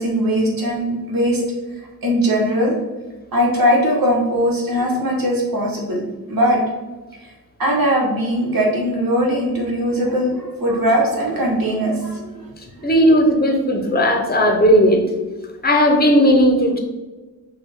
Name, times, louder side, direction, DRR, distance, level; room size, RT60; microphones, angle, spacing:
voice 1, 0.0-1.4 2.0-2.7 3.3-6.0 6.3-6.6 7.6-12.3, equal, 70° right, -3 dB, 1.4 m, -19 dB
voice 2, 12.8-15.0 15.6-16.8, equal, 25° left, 3 dB, 0.9 m, -15 dB
5.9 x 2.5 x 3.6 m, 1.2 s
wide cardioid pair, 70°, 35 cm